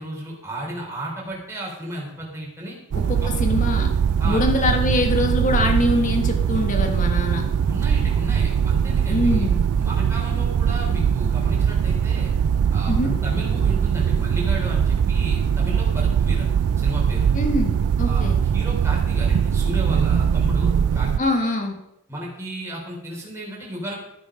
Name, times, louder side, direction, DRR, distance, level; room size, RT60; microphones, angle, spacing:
voice 1, 0.0-2.8 3.2-3.3 4.2-4.4 7.6-9.5 9.8-12.3 12.7-13.0 13.2-16.5 16.8-17.3 18.0-18.3 18.5-21.3 22.1-24.0, right 1 dB, 10° right, -3 dB, 4.0 m, -33 dB
voice 2, 2.9-4.0 4.2-7.4 9.1-9.6 12.9-13.2 17.3-17.7 18.0-18.4 21.2-21.8, left 1 dB, 35° left, 3 dB, 1.7 m, -23 dB
sound 1, 2.9-21.2, right 7 dB, 85° right, 0.3 m, -21 dB
14.0 x 8.9 x 5.1 m, 0.85 s
head